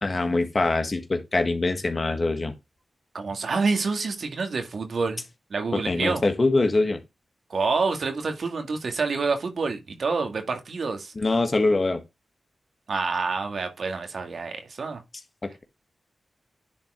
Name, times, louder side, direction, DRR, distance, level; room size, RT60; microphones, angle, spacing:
voice 1, 0.0-2.5 5.7-7.0 11.1-12.0, left 2 dB, 45° left, 1.6 m, -23 dB
voice 2, 3.1-5.2 5.5-6.2 7.5-11.1 12.9-15.0, right 4 dB, 70° right, 2.0 m, -27 dB
10.5 x 4.4 x 3.7 m
cardioid pair, 50°, 0 cm